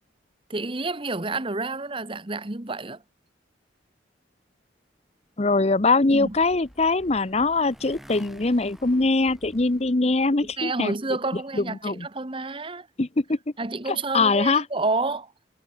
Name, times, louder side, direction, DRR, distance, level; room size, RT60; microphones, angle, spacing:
voice 1, 0.5-3.0 6.1-6.3 10.6-12.9 13.6-15.3, right 3 dB, 30° right, 1.2 m, -29 dB
voice 2, 5.4-10.9 11.5-12.1 13.0-13.4 13.9-14.6, left 3 dB, 35° left, 0.8 m, -22 dB
Motorcycle, 6.0-10.6, equal, ahead, 5.4 m, -50 dB
head